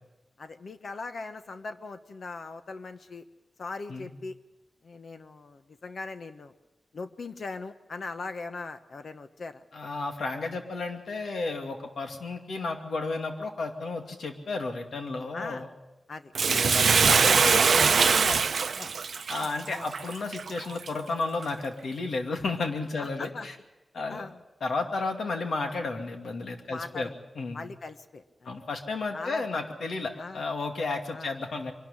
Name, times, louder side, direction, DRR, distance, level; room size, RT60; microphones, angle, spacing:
voice 1, 0.4-3.2 3.6-4.4 4.8-6.5 6.9-9.6 15.3-15.6 16.1-16.3 17.1-19.0 19.3-19.5 19.7-19.8 23.0-23.5 24.1-24.4 26.7-27.1 27.5-28.5 29.1-29.6 30.2-30.4 31.1-31.3, left 3 dB, 65° left, 9 dB, 1.1 m, -39 dB
voice 2, 9.7-15.7 16.5-17.2 19.3-23.5 23.9-24.2 24.6-27.1 27.4-27.6 28.5-31.7, left 3 dB, 90° left, 4 dB, 2.5 m, -32 dB
Bathtub (filling or washing), 16.3-20.9 21.4-21.5, right 5 dB, 75° right, 0.6 m, -23 dB
23.5 x 12.0 x 9.9 m, 1.0 s
wide cardioid pair, 105°, 0 cm